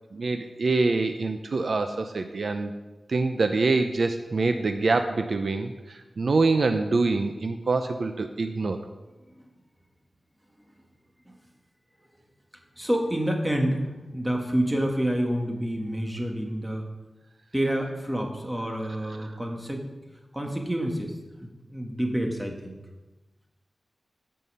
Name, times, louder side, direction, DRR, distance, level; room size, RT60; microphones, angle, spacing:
voice 1, 0.1-2.7 3.1-8.8 19.2-19.3, right 3 dB, 60° right, 7 dB, 0.6 m, -25 dB
voice 2, 12.8-16.9 17.5-19.8 20.3-21.1 21.4-22.8, equal, 10° right, 1 dB, 1.6 m, -28 dB
14.0 x 5.5 x 5.5 m, 1.1 s
wide cardioid pair, 120°, 0 cm